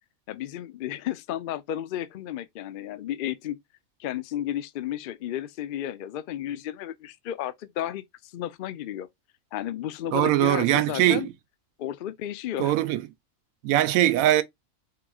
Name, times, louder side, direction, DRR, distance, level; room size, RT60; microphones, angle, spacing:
voice 1, 0.3-3.6 4.0-9.1 9.5-11.3 11.8-12.7, left 11 dB, 75° left, 0.5 m, -33 dB
voice 2, 10.1-11.3 12.6-13.0 13.6-14.4, right 13 dB, 80° right, 1.0 m, -21 dB
4.8 x 3.6 x 2.3 m
omnidirectional pair, 1.5 m